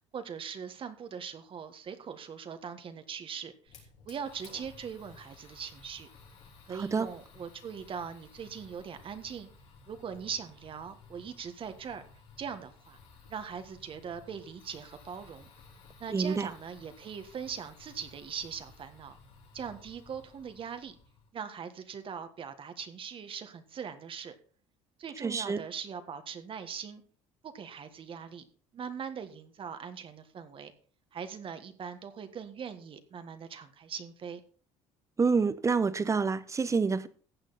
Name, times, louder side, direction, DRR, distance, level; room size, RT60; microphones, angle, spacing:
voice 1, 0.1-3.8 4.0-6.1 6.7-9.5 9.9-12.0 12.4-13.0 13.3-15.5 16.0-19.2 19.5-20.9 21.3-24.4 25.0-27.0 27.4-28.5 28.7-30.7 31.1-34.4, right 7 dB, 45° right, 1.5 m, -41 dB
Fire, 3.7-21.3, left 4 dB, 75° left, 5.2 m, -56 dB
voice 2, 6.7-7.1 16.1-16.5 25.2-25.6 35.2-37.1, right 5 dB, 25° right, 1.0 m, -28 dB
15.0 x 8.1 x 4.1 m
supercardioid pair, 90°, 13 cm